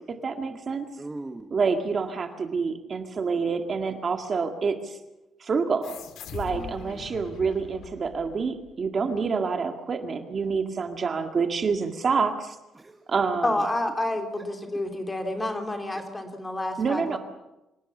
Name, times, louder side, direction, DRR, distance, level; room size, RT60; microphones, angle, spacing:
voice 1, 0.0-0.9 1.5-5.0 5.4-6.0 6.3-12.6 13.1-13.5 16.8-17.2, right 5 dB, 35° right, 6 dB, 1.9 m, -27 dB
voice 2, 1.0-1.6 6.5-7.1 12.7-13.1 15.9-16.0, right 2 dB, 15° right, 6 dB, 1.3 m, -41 dB
sound 1, 5.8-8.9, left 8 dB, 90° left, 2.0 m, -42 dB
voice 3, 13.4-17.2, left 1 dB, 15° left, 4 dB, 2.9 m, -29 dB
26.0 x 18.0 x 7.1 m, 0.95 s
cardioid pair, 160°, 0 cm